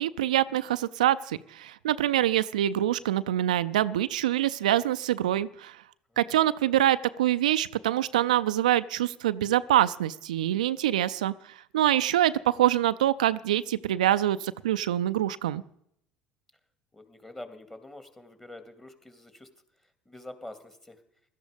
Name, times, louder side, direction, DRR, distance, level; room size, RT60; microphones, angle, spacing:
voice 1, 0.0-5.8 6.2-11.3 11.7-15.6, right 12 dB, 80° right, 13 dB, 0.5 m, -25 dB
voice 2, 6.1-6.5 11.8-12.1 16.9-19.5 20.1-21.0, left 1 dB, 10° left, 9 dB, 2.4 m, -46 dB
16.5 x 12.5 x 5.2 m, 0.72 s
hypercardioid pair, 70°, 4 cm